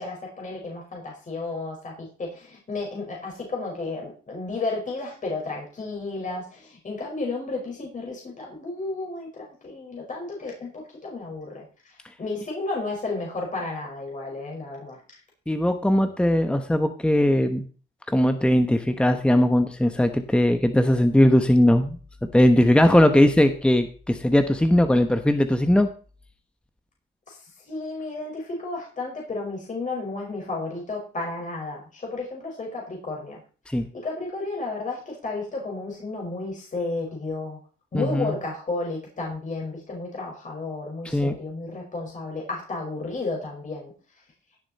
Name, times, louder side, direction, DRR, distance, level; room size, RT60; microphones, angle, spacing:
voice 1, 0.0-15.0 27.3-33.4 33.9-37.6 37.9-43.9, left 3 dB, 40° left, -1 dB, 5.2 m, -32 dB
voice 2, 15.5-17.6 18.1-22.0 22.3-25.9 33.7-33.9 37.9-38.4 41.0-41.4, left 1 dB, 5° left, 8 dB, 1.1 m, -19 dB
16.5 x 7.1 x 4.2 m, 0.39 s
cardioid pair, 90°, 20 cm